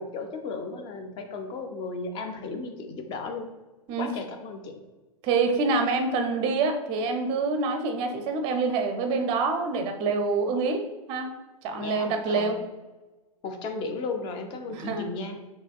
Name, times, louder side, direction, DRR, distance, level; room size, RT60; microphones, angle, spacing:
voice 1, 0.0-3.5 4.0-4.8 11.8-12.6 13.4-15.4, left 3 dB, 25° left, 6 dB, 0.5 m, -35 dB
voice 2, 5.2-11.3 11.6-12.6 14.7-15.1, right 4 dB, 25° right, 5 dB, 0.5 m, -26 dB
5.6 x 3.1 x 2.3 m, 1.1 s
figure-of-eight pair, 105°, 19 cm